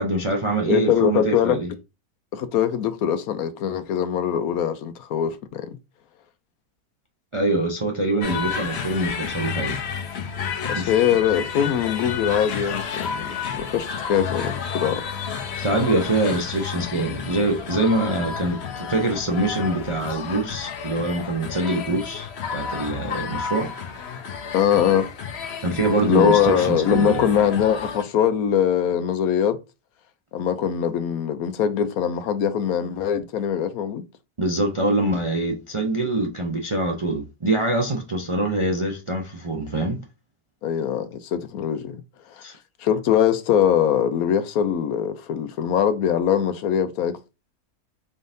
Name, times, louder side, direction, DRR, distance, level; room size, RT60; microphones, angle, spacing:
voice 1, 0.0-1.7 7.3-9.8 10.7-10.9 15.6-23.9 25.6-27.3 34.4-40.0 42.4-42.5, right 2 dB, 40° right, 0.4 m, -24 dB
voice 2, 0.7-1.6 2.3-5.8 10.7-15.0 24.5-25.1 26.1-29.6 30.3-34.0 40.6-42.0 42.8-47.2, left 9 dB, 75° left, 1.1 m, -22 dB
sound 1, 8.2-28.0, left 6 dB, 55° left, 0.8 m, -31 dB
4.4 x 3.6 x 2.6 m
omnidirectional pair, 1.6 m